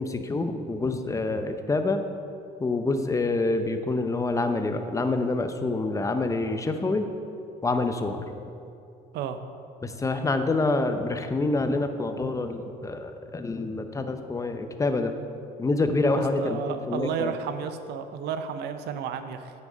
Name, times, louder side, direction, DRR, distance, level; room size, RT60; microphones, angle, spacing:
voice 1, 0.0-2.0 2.6-7.1 7.6-8.2 9.8-15.1 15.6-17.3, left 3 dB, 20° left, 7 dB, 0.7 m, -27 dB
voice 2, 16.4-19.5, right 7 dB, 80° right, 9 dB, 0.6 m, -32 dB
9.0 x 6.3 x 5.2 m, 2.5 s
cardioid pair, 110°, 17 cm